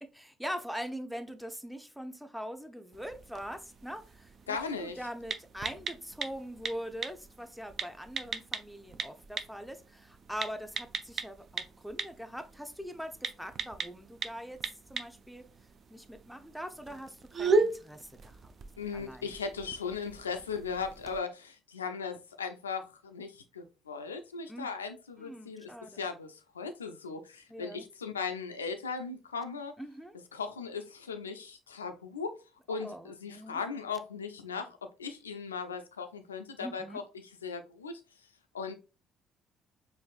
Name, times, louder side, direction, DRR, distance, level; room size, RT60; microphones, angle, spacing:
voice 1, 0.2-14.6 14.9-15.4 15.9-18.5 18.9-19.3 24.5-24.7 25.2-26.1 27.5-27.9 29.8-30.1 32.8-33.6 36.6-37.0, equal, ahead, 0.6 m, -42 dB
sound 1, 2.9-21.2, right 3 dB, 45° right, 0.4 m, -38 dB
voice 2, 4.5-5.1 18.8-29.7 30.3-32.4 32.7-37.0 37.4-38.0 38.5-38.7, left 5 dB, 90° left, 0.3 m, -38 dB
4.4 x 2.4 x 2.3 m
hypercardioid pair, 50°, 0 cm